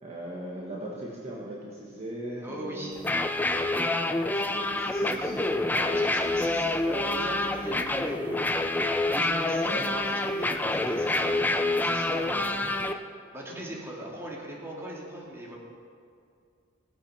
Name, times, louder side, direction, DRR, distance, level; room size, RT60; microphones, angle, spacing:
voice 1, 0.0-3.1 4.3-5.4 9.6-9.9, right 1 dB, 35° right, -4 dB, 1.6 m, -38 dB
voice 2, 2.4-3.0 5.7-8.4 9.1-12.6 13.3-15.6, right 1 dB, 15° right, -4 dB, 2.5 m, -39 dB
sound 1, 3.0-12.9, left 2 dB, 10° left, 0.6 m, -27 dB
17.5 x 8.7 x 5.8 m, 2.3 s
head